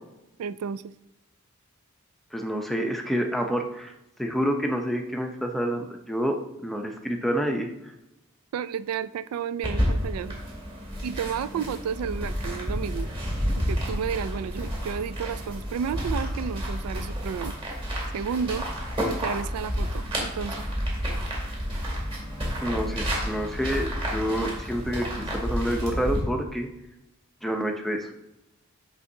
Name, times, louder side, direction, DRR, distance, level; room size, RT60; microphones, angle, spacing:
voice 1, 0.4-0.8 8.5-10.4 11.0-13.1 13.6-17.6 18.1-18.7 19.1-20.6 21.1-21.2, right 7 dB, 85° right, 16 dB, 0.3 m, -32 dB
voice 2, 2.3-3.9 4.2-6.4 6.6-7.7 22.6-26.7 27.4-28.1, equal, ahead, 3 dB, 0.6 m, -28 dB
sound 1, 9.6-26.2, equal, 25° right, 2.4 m, -30 dB
8.2 x 6.1 x 2.7 m, 0.91 s
head